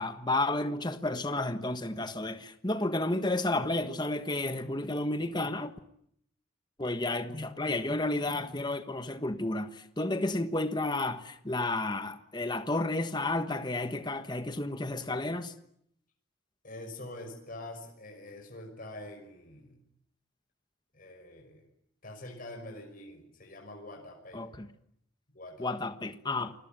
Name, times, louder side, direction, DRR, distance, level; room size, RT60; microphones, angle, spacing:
voice 1, 0.0-5.7 6.8-15.5 24.3-24.7 25.6-26.5, left 2 dB, 20° left, 1.4 m, -31 dB
voice 2, 16.6-19.8 20.9-21.7 22.0-24.4 25.3-25.7, left 1 dB, 40° left, 5.8 m, -45 dB
28.0 x 21.5 x 9.1 m
head